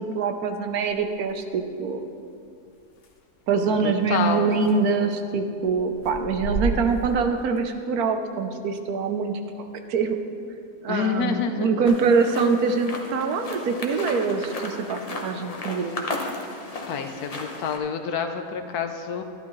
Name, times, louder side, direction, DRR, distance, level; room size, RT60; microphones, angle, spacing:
voice 1, 0.0-2.0 3.5-10.2 10.8-15.9, right 5 dB, 70° right, 6 dB, 1.2 m, -24 dB
sound 1, 0.9-1.3 3.0-3.1 4.1-4.2 4.5-5.1 5.7-7.6, right 2 dB, 90° left, 1.5 m, -31 dB
voice 2, 3.6-4.6 10.9-11.7 16.9-19.2, left 6 dB, 75° left, 6 dB, 1.2 m, -28 dB
sound 2, 11.8-17.8, left 2 dB, 30° left, 0.7 m, -35 dB
12.0 x 11.0 x 3.1 m, 2.4 s
omnidirectional pair, 1.7 m